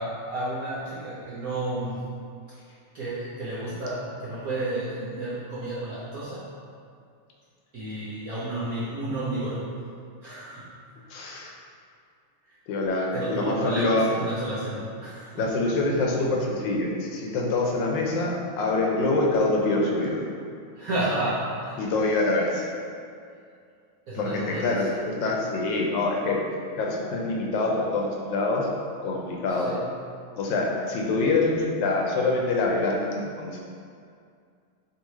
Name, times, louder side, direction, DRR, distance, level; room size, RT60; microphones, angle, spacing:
voice 1, 0.0-2.0 2.9-6.4 7.7-9.6 10.2-10.7 13.1-15.4 20.7-21.8 24.1-25.0 29.5-29.8, right 1 dB, 70° right, -8 dB, 0.8 m, -31 dB
voice 2, 11.1-11.6 12.7-14.1 15.3-20.2 21.8-22.6 24.1-26.4 26.8-28.7 29.0-29.7 30.3-33.6, left 2 dB, 70° left, -1 dB, 1.2 m, -25 dB
4.6 x 2.8 x 3.1 m, 2.3 s
omnidirectional pair, 2.2 m